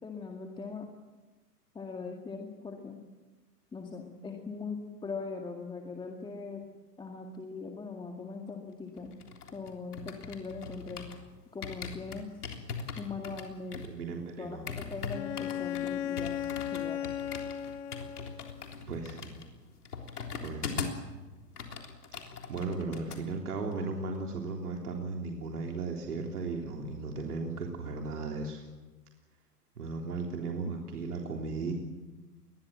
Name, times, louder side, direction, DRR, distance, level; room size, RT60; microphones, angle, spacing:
voice 1, 0.0-0.9 1.7-3.0 3.7-6.6 7.0-9.1 9.5-11.1 11.5-12.3 13.0-13.9 14.4-17.0, left 4 dB, 10° left, 2 dB, 2.0 m, -40 dB
sound 1, 9.0-11.3 11.6-21.1 21.4-23.2 23.5-23.8, left 5 dB, 70° left, 3.7 m, -41 dB
voice 2, 13.9-14.6 18.9-19.3 20.4-20.9 22.1-22.2 22.5-28.6 29.8-31.7, right 4 dB, 65° right, 1 dB, 3.5 m, -36 dB
Bowed string instrument, 15.1-18.6, left 10 dB, 45° left, 1.5 m, -36 dB
28.5 x 21.5 x 7.7 m, 1.2 s
figure-of-eight pair, 110°, 48 cm